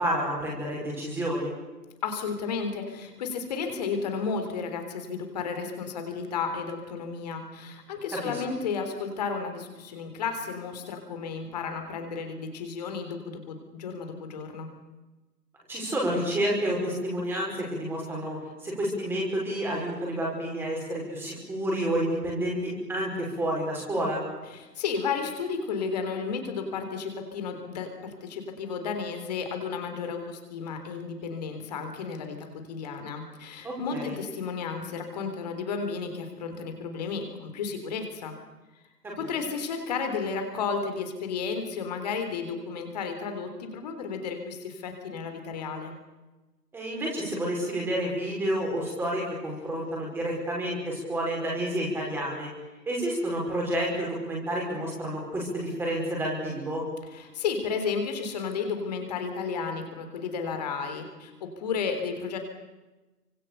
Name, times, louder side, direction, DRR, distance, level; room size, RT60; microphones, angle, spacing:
voice 1, 0.0-1.5 8.2-8.4 15.7-24.2 33.6-34.1 39.0-39.3 46.7-52.5 52.9-56.8, right 1 dB, 5° right, -3 dB, 5.5 m, -30 dB
voice 2, 2.0-14.7 24.5-38.4 39.2-45.9 57.1-62.4, left 5 dB, 25° left, 6 dB, 3.7 m, -33 dB
29.5 x 25.5 x 6.9 m, 1.1 s
figure-of-eight pair, 145°, 49 cm